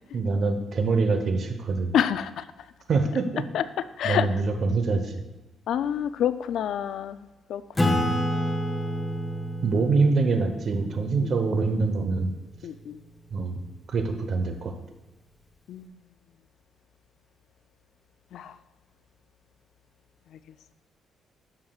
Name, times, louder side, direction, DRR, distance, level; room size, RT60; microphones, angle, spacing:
voice 1, 0.1-1.9 2.9-3.4 4.0-5.1 7.8-8.2 9.6-12.3 13.3-13.6 13.9-14.7, right 4 dB, 55° right, 6 dB, 1.0 m, -25 dB
voice 2, 1.9-2.5 3.5-3.6 4.0-4.4 5.7-8.0 11.2-11.3 12.6-13.0 15.7-15.9 18.3-18.6 20.3-20.4, left 9 dB, 75° left, 14 dB, 0.4 m, -28 dB
Acoustic guitar / Strum, 7.8-12.8, equal, 15° left, 0.8 m, -30 dB
11.5 x 7.3 x 2.4 m, 1.1 s
cardioid pair, 90°, 0 cm